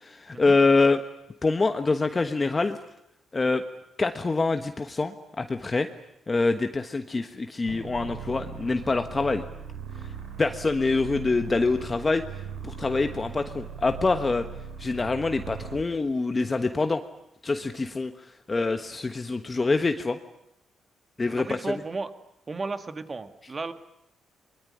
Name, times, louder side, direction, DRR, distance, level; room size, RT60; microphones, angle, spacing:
voice 1, 0.0-1.0 1.4-2.8 3.3-3.6 4.0-5.9 6.3-9.4 10.4-12.2 12.6-14.5 14.8-17.0 17.4-18.1 18.5-20.2 21.2-21.8, left 3 dB, 25° left, 7 dB, 1.3 m, -25 dB
sound 1, 7.6-15.9, right 7 dB, 85° right, 3.8 m, -39 dB
voice 2, 21.4-22.1 22.5-23.7, right 3 dB, 30° right, 9 dB, 2.0 m, -34 dB
23.5 x 22.0 x 9.9 m, 0.80 s
cardioid pair, 90°, 0 cm